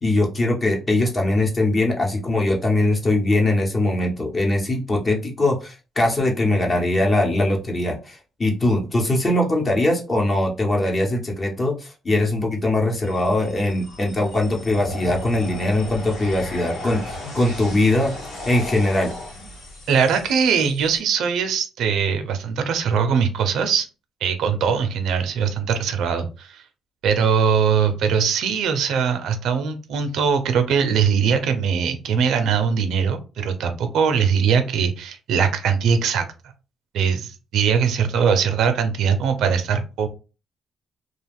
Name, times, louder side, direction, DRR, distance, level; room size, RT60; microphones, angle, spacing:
voice 1, 0.0-18.1 18.5-19.1, left 1 dB, 30° left, 0 dB, 1.0 m, -21 dB
sound 1, 13.0-21.0, left 2 dB, 80° left, 1.7 m, -36 dB
voice 2, 19.9-23.9 24.2-26.6 27.0-36.3 36.9-40.1, right 6 dB, 80° right, 8 dB, 0.5 m, -21 dB
2.4 x 2.3 x 3.4 m, 0.32 s
cardioid pair, 90°, 0 cm